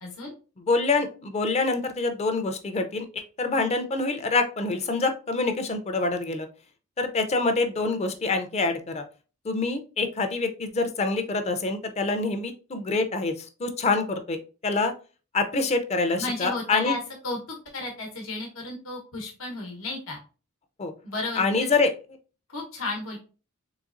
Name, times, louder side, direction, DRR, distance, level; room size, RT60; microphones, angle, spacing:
voice 1, 0.0-0.3 16.2-17.4 17.7-20.2 21.0-21.7 22.5-23.2, left 3 dB, 90° left, 0 dB, 1.0 m, -33 dB
voice 2, 0.7-6.5 7.0-9.0 9.4-14.9 15.3-17.0 20.8-20.9 21.4-21.9, left 3 dB, 30° left, 7 dB, 0.4 m, -26 dB
4.0 x 3.2 x 2.4 m, 0.35 s
head